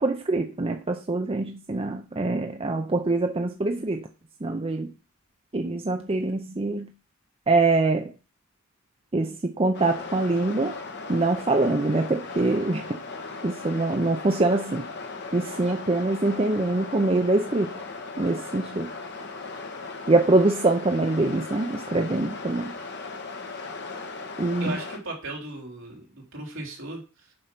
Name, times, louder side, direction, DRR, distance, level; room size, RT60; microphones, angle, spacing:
voice 1, 0.0-4.1 4.4-4.9 5.5-6.9 7.5-8.1 9.1-10.8 11.1-13.0 13.4-14.9 15.3-17.8 18.2-18.9 20.1-22.7 24.4-24.8, right 2 dB, 25° right, 5 dB, 0.6 m, -24 dB
sound 1, 9.7-25.0, left 3 dB, 55° left, 1.5 m, -38 dB
voice 2, 24.6-27.0, right 2 dB, 60° right, -1 dB, 3.4 m, -36 dB
7.7 x 5.4 x 5.9 m, 0.33 s
head